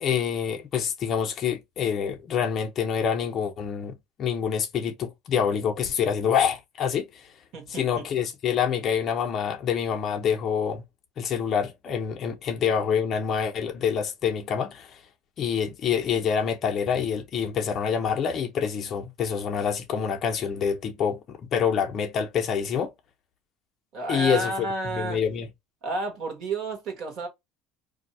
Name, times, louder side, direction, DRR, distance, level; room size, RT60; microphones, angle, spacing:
voice 1, 0.0-7.3 7.7-10.8 11.2-15.0 15.4-22.9 24.1-25.5, left 7 dB, 30° left, 0.6 m, -26 dB
voice 2, 7.5-8.1 23.9-25.2 25.8-27.3, right 2 dB, 45° right, 1.3 m, -31 dB
2.7 x 2.2 x 4.0 m
cardioid pair, 170°, 0 cm